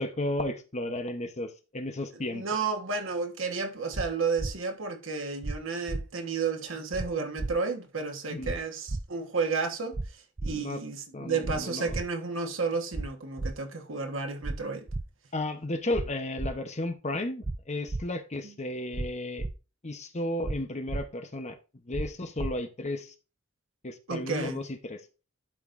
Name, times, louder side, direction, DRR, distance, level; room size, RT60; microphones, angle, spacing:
voice 1, 0.0-2.4 8.3-8.5 10.4-10.8 11.1-12.0 15.3-19.5 19.8-21.6 21.8-23.1 23.8-25.0, left 1 dB, 35° left, 0.9 m, -33 dB
voice 2, 2.2-14.8 18.4-18.5 24.1-24.6, right 4 dB, 85° right, 1.4 m, -32 dB
sound 1, 3.9-4.1 4.4-4.5 5.4-5.6 5.9-6.0 6.9-7.1 7.4-7.5 8.4-8.6 8.9-9.0 9.9-10.1 10.4-10.5 11.4-11.6 11.9-12.0 12.9-13.1 13.4-13.5 14.4-14.6 14.9-15.0 15.9-16.1 16.4-16.5 17.4-17.6 17.9-18.0 18.9-19.1 19.4-19.5 20.4-20.6 20.9-21.0 21.9-22.1 22.4-22.5, right 2 dB, 25° right, 0.4 m, -32 dB
12.0 x 5.3 x 2.6 m
head